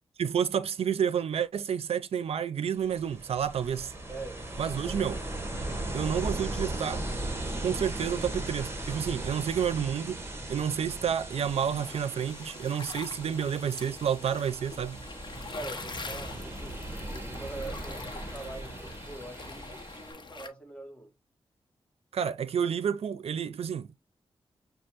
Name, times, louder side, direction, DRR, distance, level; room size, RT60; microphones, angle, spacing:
voice 1, 0.2-3.9 4.6-5.2 5.9-7.0 7.6-10.2 10.5-15.0 22.1-24.0, right 8 dB, 80° right, 0.5 m, -30 dB
Ocean, 2.7-20.1, right 1 dB, 25° right, 1.5 m, -38 dB
voice 2, 4.1-5.2 13.3-13.4 15.5-16.8 17.1-21.1, right 2 dB, 10° left, 1.5 m, -44 dB
sound 1, 11.3-20.5, left 3 dB, 50° left, 1.0 m, -44 dB
6.6 x 2.4 x 3.0 m
cardioid pair, 75°, 10 cm